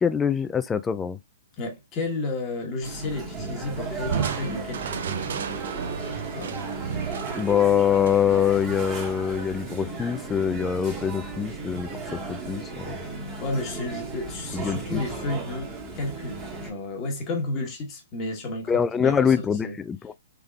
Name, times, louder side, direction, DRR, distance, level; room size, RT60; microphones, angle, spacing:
voice 1, 0.0-1.2 7.3-11.9 12.3-13.0 14.5-15.0 18.7-20.1, left 8 dB, 15° left, 0.4 m, -24 dB
voice 2, 1.6-5.1 6.3-6.6 13.4-19.3 19.6-19.8, left 2 dB, 30° left, 1.3 m, -32 dB
sound 1, 2.8-16.7, right 3 dB, 25° right, 1.4 m, -35 dB
Crushing, 4.1-9.5, right 7 dB, 65° right, 0.6 m, -33 dB
3.6 x 3.4 x 2.3 m
hypercardioid pair, 130°, 0 cm